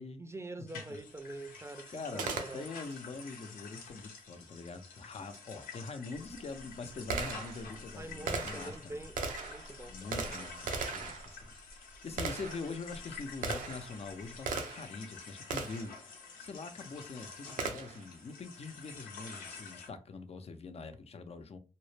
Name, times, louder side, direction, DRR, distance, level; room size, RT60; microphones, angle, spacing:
voice 1, 0.2-2.7 8.0-10.1, right 2 dB, 20° right, 0.5 m, -45 dB
sound 1, 0.7-19.9, left 5 dB, 90° left, 0.6 m, -49 dB
voice 2, 1.9-9.0 9.9-11.5 12.0-21.6, left 4 dB, 50° left, 0.5 m, -44 dB
Gunshot gunfire, 2.2-3.0 5.3-5.4 6.1-15.0 15.5-16.0 17.6-18.1, right 4 dB, 70° right, 0.5 m, -39 dB
2.1 x 2.0 x 3.2 m
supercardioid pair, 45°, 14 cm